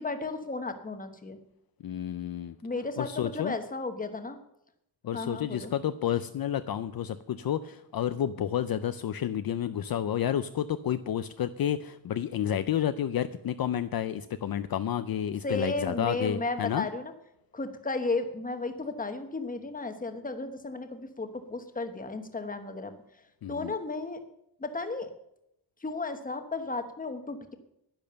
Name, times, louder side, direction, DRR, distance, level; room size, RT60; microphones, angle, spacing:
voice 1, 0.0-1.4 2.6-4.4 5.1-5.7 15.4-17.1 17.5-22.9 23.5-24.2 24.6-25.1 25.8-27.5, left 3 dB, 20° left, 8 dB, 1.1 m, -34 dB
voice 2, 1.8-2.6 3.0-3.6 5.0-16.9 23.4-23.7, left 10 dB, 60° left, 11 dB, 0.5 m, -30 dB
10.5 x 10.5 x 6.8 m, 0.81 s
wide cardioid pair, 180°, 42 cm